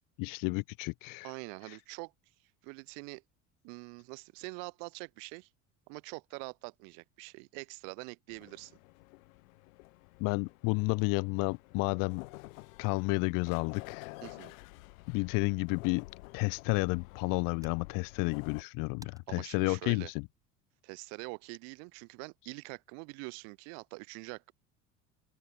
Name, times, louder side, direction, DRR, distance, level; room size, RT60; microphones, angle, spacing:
voice 1, 0.2-1.3 1.7-1.8 10.2-12.2 12.8-14.2 15.1-16.1 16.3-20.2, left 30 dB, 50° left, 0.5 m, -31 dB
voice 2, 1.2-2.1 2.6-3.2 3.6-5.5 5.9-8.8 14.2-14.5 19.3-20.1 20.8-24.5, right 40 dB or more, 60° right, 1.2 m, -44 dB
sound 1, 8.3-18.6, left 23 dB, 65° left, 2.5 m, -51 dB
sound 2, 18.8-21.5, right 2 dB, 10° right, 6.7 m, -65 dB
open air
figure-of-eight pair, 70°, 44 cm